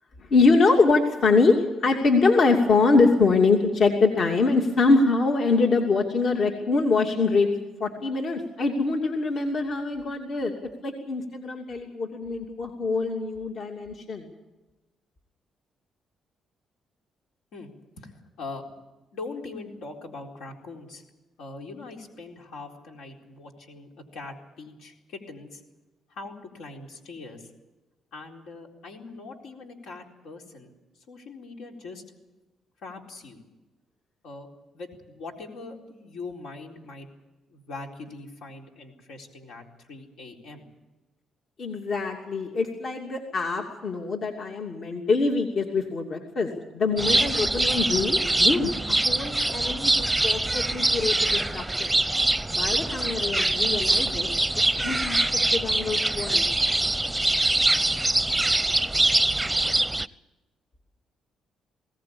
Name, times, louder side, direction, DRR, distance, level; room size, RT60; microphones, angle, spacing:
voice 1, 0.2-7.5 7.8-10.5 10.8-14.3 41.6-46.5 46.7-51.9 52.5-54.3 54.8-55.2 55.5-56.5, left 3 dB, 55° left, 2 dB, 2.8 m, -24 dB
voice 2, 18.0-18.6 19.1-21.0 21.4-25.6 26.1-27.5 28.1-30.7 31.1-32.0 32.8-33.4 34.2-34.5 34.7-37.1 37.5-40.7, left 3 dB, 85° left, 1 dB, 4.2 m, -41 dB
sound 1, 47.0-60.1, right 2 dB, 10° right, 0.7 m, -24 dB
21.5 x 17.5 x 8.8 m, 1.1 s
cardioid pair, 90°, 0 cm